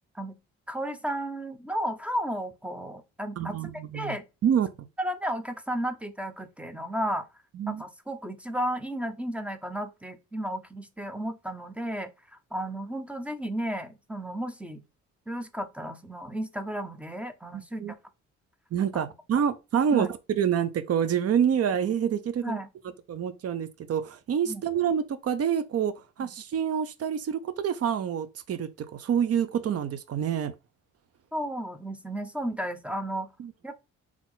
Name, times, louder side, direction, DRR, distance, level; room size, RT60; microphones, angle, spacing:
voice 1, 0.7-4.2 5.0-7.3 7.7-12.1 12.5-14.8 15.3-17.8 18.9-19.0 19.9-20.1 22.4-22.7 24.5-24.6 26.2-26.3 31.3-33.3 33.6-33.7, equal, 5° right, 0.9 m, -33 dB
voice 2, 3.4-4.2 4.4-4.7 7.5-7.8 17.5-17.9 18.7-22.6 23.1-25.9 26.2-30.5 33.4-33.5, right 8 dB, 55° right, 0.8 m, -27 dB
4.1 x 3.0 x 3.9 m
cardioid pair, 90°, 30 cm